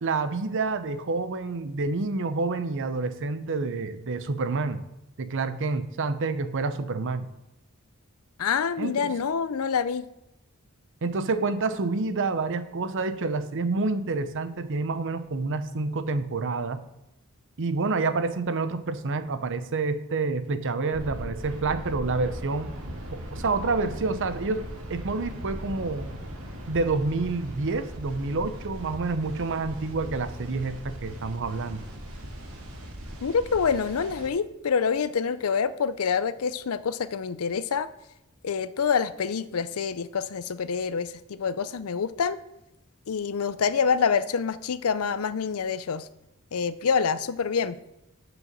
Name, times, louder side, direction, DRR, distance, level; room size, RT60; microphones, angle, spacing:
voice 1, 0.0-4.8 5.2-7.3 8.8-9.1 11.0-16.8 17.6-22.8 23.1-26.1 26.7-31.8, right 3 dB, 60° right, 11 dB, 0.7 m, -28 dB
voice 2, 8.4-10.1 33.2-37.9 38.4-42.4 43.1-46.1 46.5-47.8, left 6 dB, 75° left, 14 dB, 0.5 m, -26 dB
sound 1, 20.9-34.3, equal, 75° right, 1.8 m, -39 dB
7.6 x 6.3 x 6.5 m, 0.88 s
head